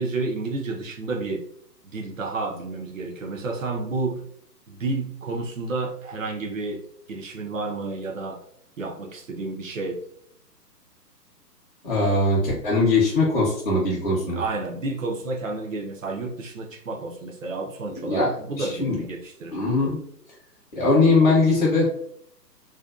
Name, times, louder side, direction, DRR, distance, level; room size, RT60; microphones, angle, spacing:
voice 1, 0.0-1.4 1.8-4.2 4.7-6.8 7.1-8.4 8.8-10.0 14.3-19.6, right 3 dB, 55° right, 1 dB, 0.5 m, -30 dB
voice 2, 11.8-14.4 18.0-18.3 18.6-19.0 19.5-20.0 20.7-21.8, left 3 dB, 30° left, -7 dB, 0.6 m, -21 dB
2.5 x 2.2 x 2.3 m, 0.68 s
figure-of-eight pair, 135°, 50 cm